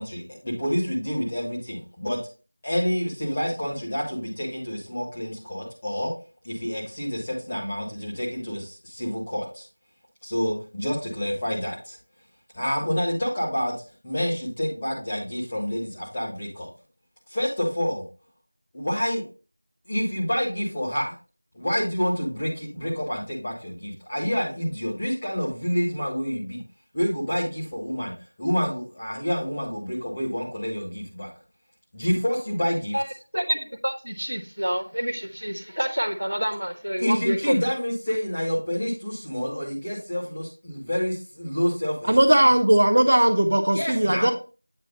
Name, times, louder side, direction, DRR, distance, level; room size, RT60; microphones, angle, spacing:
voice 1, 0.0-2.2 2.6-6.1 6.4-9.6 10.2-12.0 12.5-13.8 14.0-16.7 17.3-18.1 18.7-19.3 19.9-21.1 21.5-26.6 26.9-31.3 31.9-32.9 37.0-42.4 43.7-44.3, equal, 15° left, -7 dB, 1.6 m, -28 dB
voice 2, 33.3-37.6, equal, 70° right, 6 dB, 1.4 m, -28 dB
voice 3, 42.1-44.3, right 1 dB, 35° right, 6 dB, 0.7 m, -18 dB
9.0 x 3.0 x 5.4 m, 0.34 s
figure-of-eight pair, 175°, 0 cm